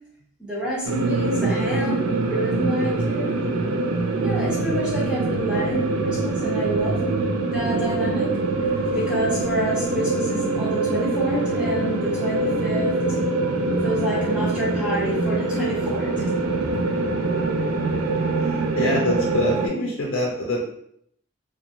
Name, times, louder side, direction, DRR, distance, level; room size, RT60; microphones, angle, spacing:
voice 1, 0.4-3.3 4.2-7.1 7.5-8.3 8.9-12.9 13.8-16.3, right 1 dB, 5° right, -7 dB, 0.7 m, -28 dB
sound 1, 0.9-19.7, right 2 dB, 85° right, 0.4 m, -24 dB
voice 2, 18.1-20.6, left 1 dB, 75° left, -2 dB, 0.5 m, -25 dB
2.5 x 2.2 x 2.9 m, 0.71 s
head